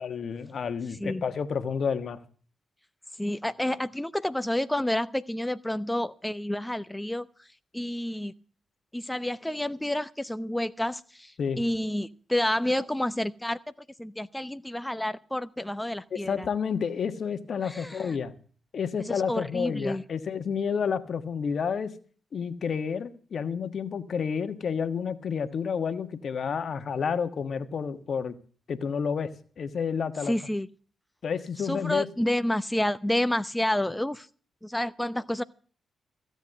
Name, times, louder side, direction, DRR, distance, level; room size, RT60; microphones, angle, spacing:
voice 1, 0.0-2.2 11.4-11.6 16.1-18.3 18.7-21.9 22.3-28.4 28.7-29.3 29.6-30.3 31.2-32.1, left 6 dB, 60° left, 1.3 m, -30 dB
voice 2, 3.2-7.5 7.7-8.3 8.9-13.6 14.0-16.5 17.6-18.2 19.1-20.0 30.2-30.7 31.6-34.3 34.6-35.4, left 1 dB, 10° left, 0.7 m, -29 dB
15.5 x 8.1 x 7.8 m
hypercardioid pair, 40°, 0 cm